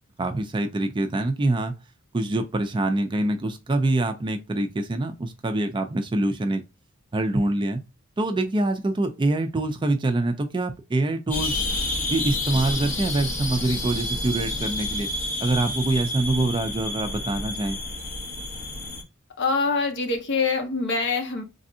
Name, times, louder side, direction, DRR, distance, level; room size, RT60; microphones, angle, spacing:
voice 1, 0.2-1.8 2.1-6.6 7.1-7.8 8.2-11.6 12.1-15.1 15.4-17.8, right 2 dB, 20° right, 0.3 m, -25 dB
sound 1, 11.3-19.0, left 2 dB, 35° left, 1.3 m, -29 dB
voice 2, 19.4-21.4, left 4 dB, 55° left, 0.8 m, -24 dB
3.3 x 2.5 x 2.6 m
head